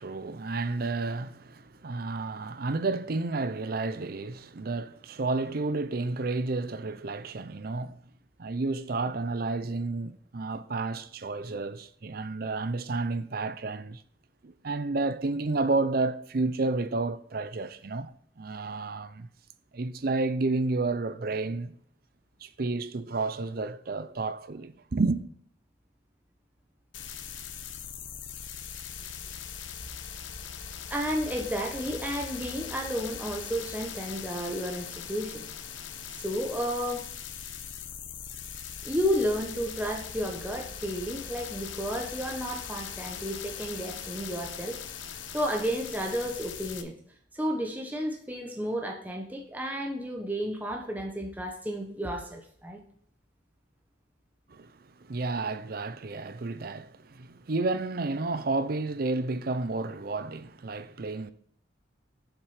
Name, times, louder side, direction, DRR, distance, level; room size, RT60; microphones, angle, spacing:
voice 1, 0.0-8.0 8.4-14.0 14.4-19.3 19.7-21.7 22.4-25.2 54.5-61.3, right 3 dB, 50° right, 0.5 m, -31 dB
sound 1, 26.9-46.8, left 7 dB, 85° left, 0.9 m, -40 dB
voice 2, 30.9-35.5 36.2-37.0 38.8-44.8 45.3-46.9 47.3-52.8, equal, 10° right, 1.0 m, -32 dB
7.4 x 7.3 x 4.9 m
head